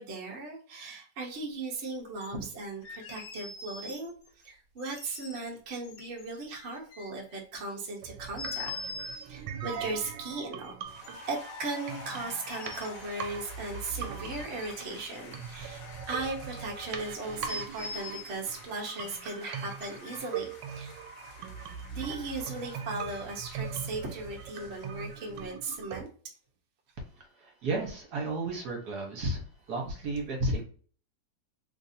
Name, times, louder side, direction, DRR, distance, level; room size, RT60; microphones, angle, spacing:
voice 1, 0.0-8.7 9.1-10.7 11.3-21.0 21.9-26.1, right 3 dB, 45° right, -1 dB, 0.9 m, -37 dB
sound 1, 2.2-2.5 2.8-4.3 4.8-5.5 5.8-7.4 8.4-9.2 9.7-9.9 11.0-11.7 12.1-13.1 14.0-15.2 15.5-16.4 16.8-16.9 17.5-18.3 19.0-19.1 19.8-20.2, left 3 dB, 90° left, 1.5 m, -43 dB
sound 2, 8.0-26.0, right 7 dB, 85° right, 1.3 m, -41 dB
sound 3, 10.8-25.4, left 3 dB, 55° left, 1.3 m, -49 dB
voice 2, 27.4-30.6, right 2 dB, 65° right, 1 dB, 1.4 m, -32 dB
3.4 x 2.6 x 2.6 m, 0.43 s
omnidirectional pair, 1.9 m